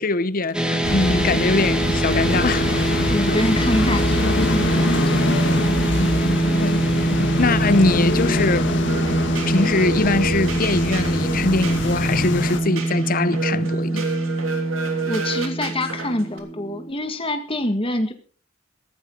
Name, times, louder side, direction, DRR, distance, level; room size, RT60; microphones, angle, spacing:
voice 1, 0.0-2.7 3.3-3.4 6.6-8.8 9.5-14.0, left 3 dB, 45° left, 0.8 m, -22 dB
sound 1, 0.5-16.9, right 2 dB, 5° right, 2.0 m, -24 dB
sound 2, 0.8-12.6, left 2 dB, 60° left, 1.5 m, -24 dB
voice 2, 3.1-5.4 15.1-18.1, left 1 dB, 25° left, 1.8 m, -25 dB
sound 3, 8.9-16.4, right 4 dB, 85° right, 3.0 m, -31 dB
16.0 x 14.5 x 3.9 m
head